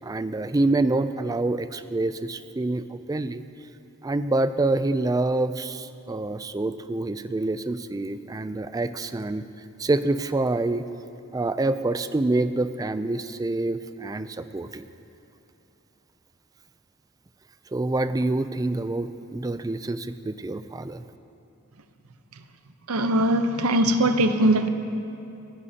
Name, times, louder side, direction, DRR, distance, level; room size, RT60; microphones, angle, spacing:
voice 1, 0.0-3.4 4.0-9.4 9.8-10.9 11.3-14.8 17.7-21.0, right 2 dB, 15° right, 0.3 m, -26 dB
voice 2, 22.9-24.7, right 1 dB, 90° right, 0.8 m, -21 dB
29.5 x 10.5 x 2.8 m
head